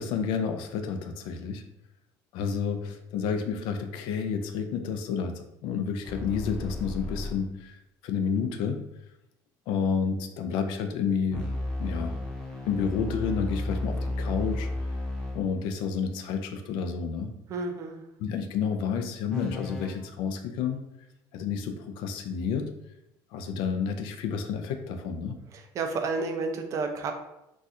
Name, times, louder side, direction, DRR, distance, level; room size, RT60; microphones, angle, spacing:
voice 1, 0.0-1.7 2.3-7.8 8.0-8.9 9.7-11.5 11.8-12.2 12.7-14.7 15.3-17.4 18.2-20.8 21.3-22.7 23.3-25.4, left 6 dB, 75° left, 7 dB, 0.4 m, -30 dB
sound 1, 6.0-7.5 11.3-15.5 19.3-19.9, left 2 dB, 10° left, 0.5 m, -33 dB
voice 2, 17.5-18.0 25.5-27.1, right 4 dB, 40° right, 5 dB, 0.4 m, -31 dB
4.1 x 2.3 x 2.5 m, 0.85 s
cardioid pair, 165°, 8 cm